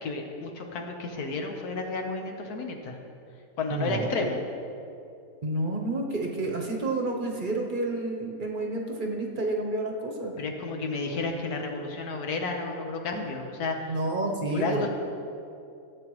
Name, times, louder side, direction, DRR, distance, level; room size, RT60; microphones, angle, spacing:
voice 1, 0.0-3.0 3.6-4.4 10.4-13.8 14.5-14.9, left 3 dB, 85° left, 3 dB, 1.6 m, -31 dB
voice 2, 3.7-4.1 5.4-10.3 13.9-14.9, right 2 dB, 40° right, 1 dB, 0.9 m, -30 dB
16.0 x 8.1 x 3.1 m, 2.6 s
omnidirectional pair, 1.6 m